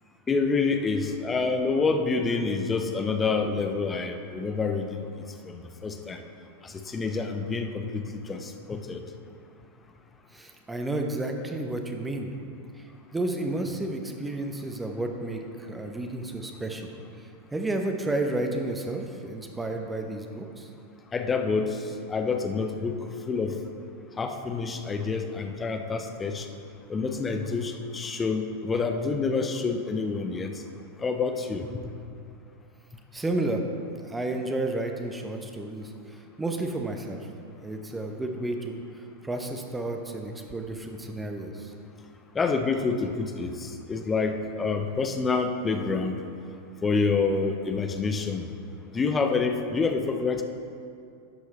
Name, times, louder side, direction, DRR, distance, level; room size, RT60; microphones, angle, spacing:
voice 1, 0.3-5.0 5.5-6.2 6.6-9.0 21.1-21.8 22.1-23.0 23.3-23.6 24.2-26.5 26.9-30.5 31.0-31.7 42.3-46.2 46.8-48.5 48.9-50.4, left 4 dB, 20° left, 6 dB, 0.7 m, -27 dB
voice 2, 10.3-12.3 12.8-12.9 13.1-16.9 17.5-20.7 27.1-27.2 33.1-33.7 34.0-37.3 37.6-38.8 39.2-41.7, right 2 dB, 10° right, 3 dB, 0.9 m, -31 dB
12.0 x 4.8 x 4.2 m, 2.5 s
figure-of-eight pair, 90°, 0 cm